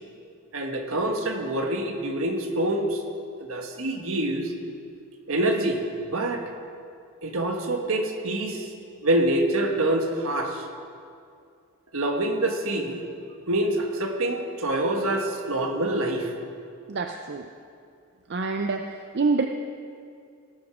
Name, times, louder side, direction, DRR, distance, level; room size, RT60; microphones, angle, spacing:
voice 1, 0.5-3.0 3.4-4.5 5.3-6.4 7.2-8.7 9.0-10.7 11.9-13.0 13.5-16.3, right 1 dB, 70° right, 3 dB, 1.4 m, -26 dB
voice 2, 16.9-17.5 18.3-19.5, right 4 dB, 50° right, 5 dB, 0.5 m, -26 dB
18.0 x 7.9 x 6.1 m, 2.4 s
head